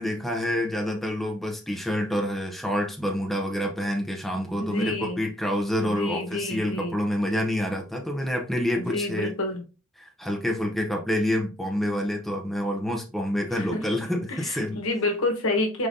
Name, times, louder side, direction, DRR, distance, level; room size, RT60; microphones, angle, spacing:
voice 1, 0.0-9.4 10.0-14.8, equal, ahead, 0.7 m, -28 dB
voice 2, 4.7-5.2 5.8-7.0 8.8-9.6 13.5-13.8 14.5-15.9, left 2 dB, 80° left, 1.1 m, -28 dB
4.9 x 3.9 x 2.6 m
head